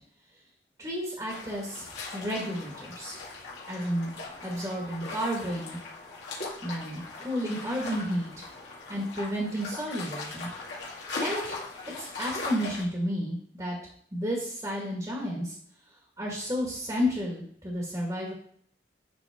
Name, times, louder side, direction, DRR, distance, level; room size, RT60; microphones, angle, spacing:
voice 1, 0.8-1.8 2.1-3.1 3.7-4.1 4.4-5.8 6.6-8.3 8.9-10.5 11.2-11.5 12.0-13.8 14.1-15.5 16.2-18.3, equal, 20° right, -2 dB, 1.7 m, -31 dB
sound 1, 1.3-12.8, left 3 dB, 75° left, 2.3 m, -39 dB
10.5 x 3.8 x 3.6 m, 0.62 s
head